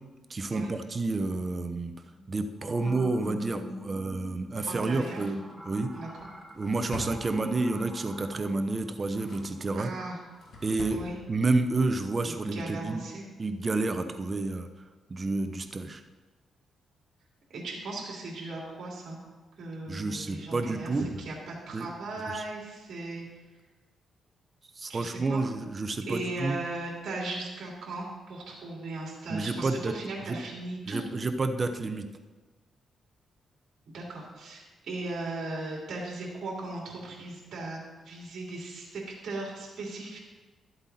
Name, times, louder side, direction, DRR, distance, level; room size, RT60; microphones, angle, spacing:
voice 1, 0.3-2.0 2.3-5.4 5.6-5.9 6.5-9.9 10.6-11.0 11.3-13.0 13.4-14.7 15.1-16.0 19.9-21.0 21.7-21.9 22.3-22.5 24.8-26.6 29.3-29.9 30.3-30.4 30.9-32.1, right 3 dB, 30° right, 8 dB, 0.7 m, -29 dB
sound 1, 2.2-10.7, equal, ahead, 1.1 m, -46 dB
Drawer open or close, 4.6-7.9 8.7-9.7 10.1-11.1 11.4-11.5, left 2 dB, 60° left, 1.9 m, -46 dB
voice 2, 4.7-5.2 5.9-6.3 9.7-10.2 10.9-11.2 12.2-13.2 17.5-19.2 19.6-23.2 24.9-25.4 26.1-31.0 33.9-40.2, right 2 dB, 60° right, -3 dB, 3.1 m, -37 dB
12.5 x 7.8 x 4.2 m, 1.3 s
cardioid pair, 115°, 0 cm